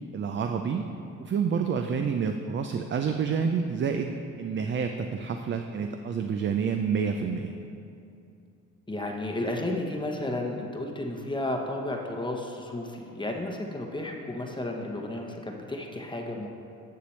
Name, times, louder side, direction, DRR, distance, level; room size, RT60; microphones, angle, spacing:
voice 1, 0.1-0.8 1.2-7.5, right 6 dB, 40° right, 5 dB, 0.4 m, -28 dB
voice 2, 8.9-16.5, left 1 dB, 15° left, 1 dB, 0.9 m, -33 dB
9.9 x 6.7 x 3.2 m, 2.7 s
cardioid pair, 90°, 30 cm